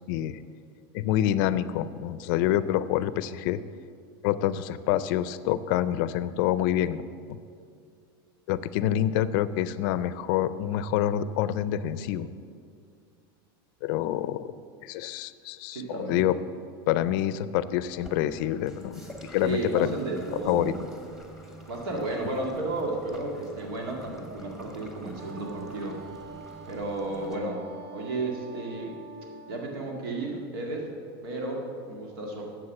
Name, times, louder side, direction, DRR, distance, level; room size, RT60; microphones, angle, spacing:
voice 1, 0.1-0.4 0.9-3.6 4.2-7.0 8.5-12.3 13.8-14.5 14.8-16.4 16.9-19.9 20.5-20.7, left 12 dB, 60° left, 15 dB, 0.5 m, -27 dB
voice 2, 15.7-16.2 19.4-20.8 21.7-26.0 26.7-27.6 27.9-28.9 29.5-30.9 31.2-32.4, right 2 dB, 85° right, 0 dB, 2.0 m, -33 dB
sound 1, 18.0-27.4, right 1 dB, 5° right, 1.2 m, -47 dB
Wind instrument woodwind instrument, 25.2-29.8, right 3 dB, 50° right, 0.8 m, -46 dB
9.7 x 7.4 x 7.1 m, 2.3 s
supercardioid pair, 140°, 12 cm